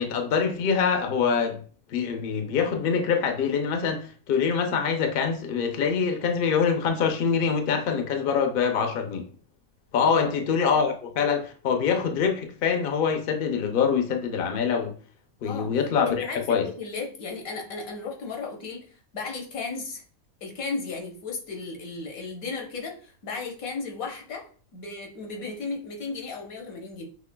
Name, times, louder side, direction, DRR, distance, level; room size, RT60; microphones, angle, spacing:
voice 1, 0.0-1.6 1.9-9.3 9.9-14.9 15.4-16.7, left 6 dB, 55° left, 0.7 m, -25 dB
voice 2, 10.0-10.4 15.4-15.7 16.0-18.8 19.1-20.0 20.4-24.4 24.7-27.1, left 4 dB, 80° left, 1.4 m, -35 dB
6.0 x 3.2 x 2.2 m
omnidirectional pair, 1.5 m